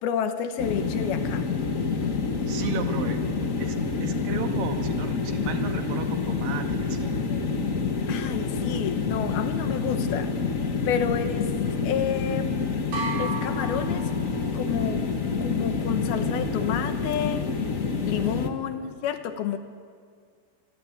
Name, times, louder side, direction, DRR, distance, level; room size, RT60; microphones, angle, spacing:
voice 1, 0.0-1.5 8.1-11.5 11.8-12.9 13.2-14.1 14.5-15.0 15.4-17.5 18.1-19.6, left 8 dB, 85° left, 8 dB, 3.0 m, -30 dB
sound 1, 0.6-18.5, left 4 dB, 65° left, 0.8 m, -27 dB
voice 2, 2.5-3.2 3.6-7.2 18.2-18.6, right 5 dB, 70° right, 5 dB, 3.5 m, -34 dB
sound 2, 12.9-14.7, right 3 dB, 90° right, 8.6 m, -34 dB
25.5 x 23.0 x 8.7 m, 2.1 s
omnidirectional pair, 4.3 m